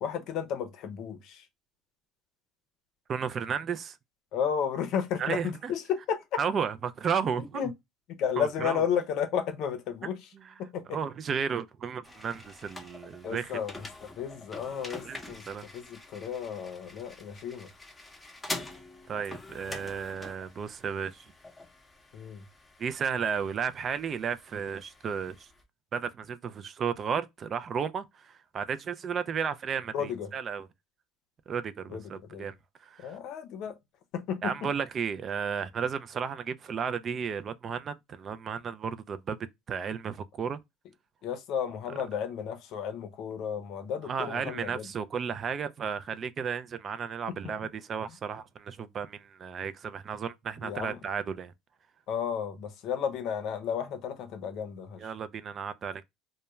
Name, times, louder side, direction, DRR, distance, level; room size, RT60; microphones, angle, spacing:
voice 1, 0.0-1.5 4.3-6.2 7.5-7.7 8.1-10.2 10.6-11.0 13.2-15.4 15.7-17.7 19.7-19.8 22.1-22.4 29.9-30.3 31.9-32.5 33.0-33.8 34.1-34.7 41.2-44.9 47.4-47.5 50.6-51.0 52.1-55.1, left 8 dB, 65° left, 0.6 m, -33 dB
voice 2, 3.1-4.0 5.2-5.7 6.4-7.6 8.4-8.8 10.9-13.6 15.0-15.7 19.1-21.2 22.8-25.5 25.9-30.7 31.5-32.5 32.8-33.2 34.4-39.4 39.7-40.6 44.0-51.5 55.0-56.0, right 6 dB, 40° right, 0.3 m, -33 dB
sound 1, 12.0-25.6, left 2 dB, 15° left, 0.7 m, -45 dB
2.2 x 2.1 x 2.9 m
supercardioid pair, 90°, 0 cm